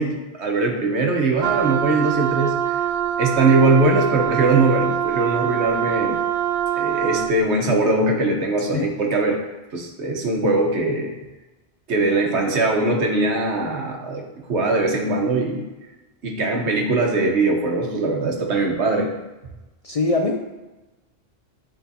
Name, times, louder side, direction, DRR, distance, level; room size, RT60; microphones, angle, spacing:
voice 1, 0.0-2.8 3.2-6.2 6.8-9.4 9.7-11.1 11.9-14.2 14.5-15.6 16.2-19.1, right 3 dB, 90° right, 2 dB, 1.3 m, -21 dB
Wind instrument woodwind instrument, 1.4-7.4, right 10 dB, 65° right, 0.9 m, -24 dB
voice 2, 19.8-20.4, left 3 dB, 50° left, 2 dB, 0.4 m, -22 dB
10.0 x 3.7 x 2.7 m, 1.1 s
omnidirectional pair, 1.1 m